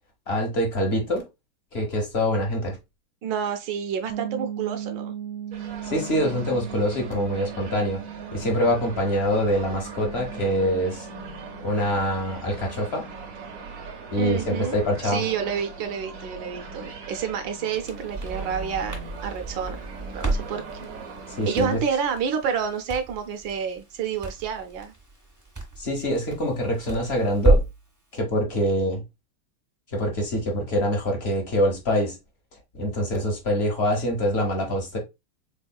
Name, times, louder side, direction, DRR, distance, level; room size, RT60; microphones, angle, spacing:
voice 1, 0.3-1.2 1.7-2.8 5.8-8.0 8.3-11.1 11.6-13.0 14.1-15.2 21.4-21.8 25.8-27.6 28.1-29.0 29.9-32.2 32.7-35.0, equal, 45° left, 0.9 m, -25 dB
voice 2, 3.2-5.1 14.2-14.8 15.0-19.8 20.1-20.6 21.4-24.9, right 7 dB, 75° right, 1.3 m, -29 dB
sound 1, 4.1-13.8, right 9 dB, 90° right, 1.5 m, -39 dB
sound 2, 5.5-21.8, right 4 dB, 60° right, 0.9 m, -40 dB
Crackle, 17.6-27.9, right 2 dB, 20° right, 0.4 m, -30 dB
4.0 x 3.5 x 2.2 m
omnidirectional pair, 2.3 m